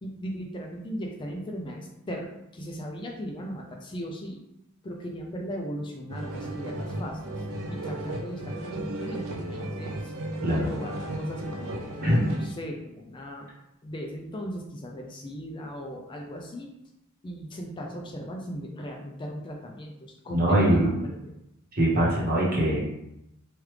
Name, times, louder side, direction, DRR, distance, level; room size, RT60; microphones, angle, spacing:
voice 1, 0.0-4.4 4.8-7.3 7.7-10.1 10.4-13.5 13.8-16.7 17.2-21.3, equal, 20° left, 1 dB, 0.3 m, -38 dB
sound 1, 6.1-12.5, right 1 dB, 65° right, 0.5 m, -34 dB
voice 2, 10.4-10.7 12.0-12.3 20.3-20.9 21.7-22.8, right 1 dB, 45° right, -6 dB, 1.0 m, -22 dB
3.2 x 2.3 x 3.2 m, 0.85 s
head